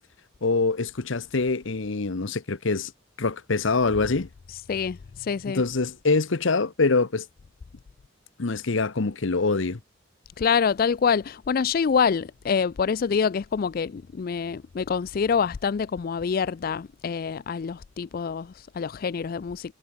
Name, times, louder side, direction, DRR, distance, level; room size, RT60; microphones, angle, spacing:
voice 1, 0.4-2.9 3.2-4.3 5.5-7.3 8.4-9.8, left 3 dB, 70° left, 0.9 m, -24 dB
voice 2, 4.5-5.6 10.4-19.7, left 6 dB, 45° left, 0.3 m, -26 dB
head